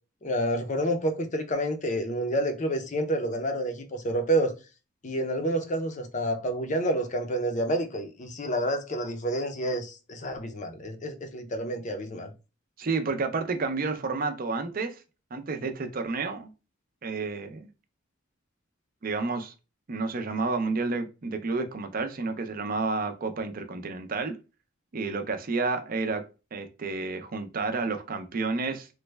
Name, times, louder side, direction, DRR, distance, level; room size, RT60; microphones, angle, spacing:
voice 1, 0.2-4.5 5.0-12.3, right 1 dB, 40° left, 0.5 m, -29 dB
voice 2, 12.8-15.0 15.3-16.5 17.0-17.7 19.0-19.5 19.9-24.4 24.9-26.2 26.5-28.9, right 3 dB, 45° right, 0.5 m, -30 dB
3.1 x 2.1 x 3.3 m
head